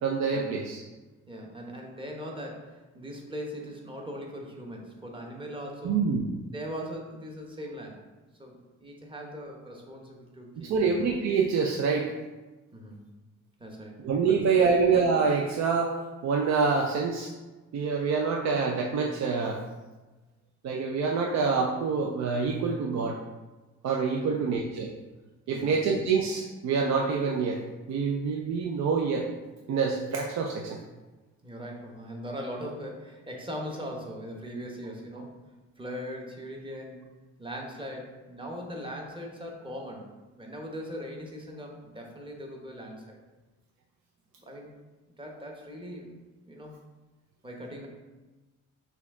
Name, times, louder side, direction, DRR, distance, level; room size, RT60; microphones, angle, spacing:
voice 1, 0.0-0.8 5.8-6.3 10.6-12.1 14.0-16.0 16.2-17.3 17.7-19.6 20.6-23.2 23.8-24.9 25.5-27.6 27.9-29.3 29.7-30.8, right 5 dB, 65° right, 1 dB, 0.5 m, -26 dB
voice 2, 1.3-6.0 6.5-8.0 8.4-11.0 12.7-13.0 13.6-14.8 24.2-24.5 25.5-25.8 31.4-35.4 35.8-37.1 37.4-43.2 44.4-44.7 45.2-46.1 46.5-46.8 47.4-47.9, equal, 15° right, 0 dB, 1.0 m, -40 dB
5.8 x 2.4 x 3.6 m, 1.2 s
cardioid pair, 90°, 30 cm